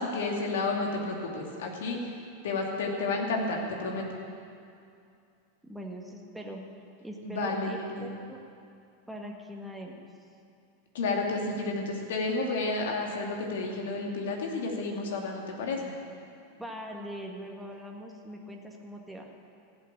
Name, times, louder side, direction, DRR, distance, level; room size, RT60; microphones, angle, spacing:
voice 1, 0.0-2.0 2.4-4.1 7.2-8.1 10.9-15.9, left 3 dB, 65° left, 1 dB, 2.5 m, -31 dB
voice 2, 5.6-6.6 7.0-8.4 9.1-10.1 16.6-19.3, equal, 5° right, 0 dB, 1.8 m, -41 dB
15.5 x 8.5 x 8.7 m, 2.4 s
figure-of-eight pair, 90°, 0 cm